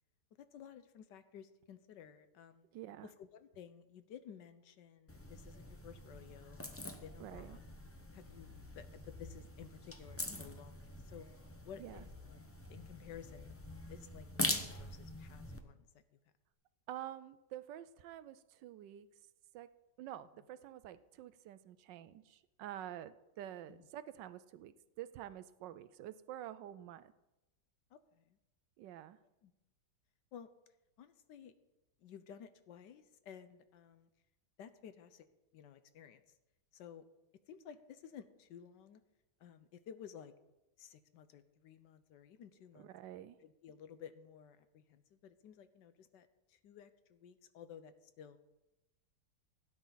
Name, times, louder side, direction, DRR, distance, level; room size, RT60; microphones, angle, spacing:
voice 1, 0.4-2.7 3.0-7.6 8.1-11.3 11.6-16.2 23.7-23.9 27.9-28.4 29.4-29.5 30.3-30.5 31.0-31.5 32.0-34.1 34.6-35.3 35.5-36.4 36.7-37.0 37.5-39.0 39.4-40.3 40.8-42.9 43.4-48.4, left 8 dB, 75° left, 11 dB, 1.4 m, -54 dB
voice 2, 2.7-3.1 7.2-7.6 11.8-12.0 16.9-19.1 19.5-19.7 20.0-27.1 28.8-29.2 42.8-43.4, right 12 dB, 80° right, 14 dB, 1.3 m, -48 dB
sound 1, 5.1-15.6, left 1 dB, 20° left, 0.4 m, -44 dB
16.5 x 9.5 x 4.0 m, 0.98 s
omnidirectional pair, 1.9 m